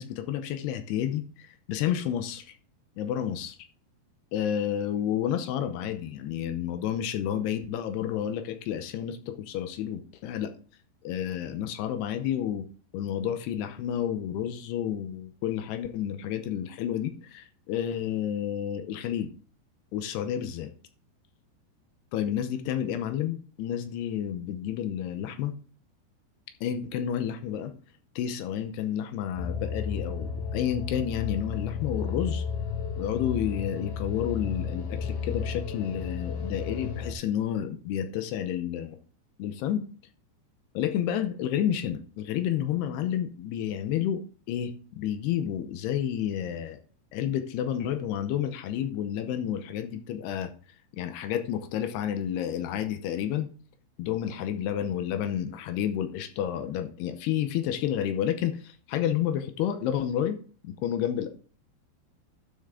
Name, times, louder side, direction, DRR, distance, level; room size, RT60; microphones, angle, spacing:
voice 1, 0.0-2.5 3.0-3.6 4.3-10.5 11.0-12.7 12.9-19.3 19.9-20.7 22.1-25.5 26.6-27.7 28.2-32.4 33.0-39.0 39.4-39.9 40.7-44.2 44.5-46.8 47.1-50.5 50.9-53.5 54.0-60.4 60.6-61.3, left 10 dB, 80° left, 8 dB, 2.5 m, -30 dB
sound 1, 29.4-37.1, left 6 dB, 65° left, 2.2 m, -33 dB
12.0 x 7.0 x 3.7 m, 0.42 s
omnidirectional pair, 5.3 m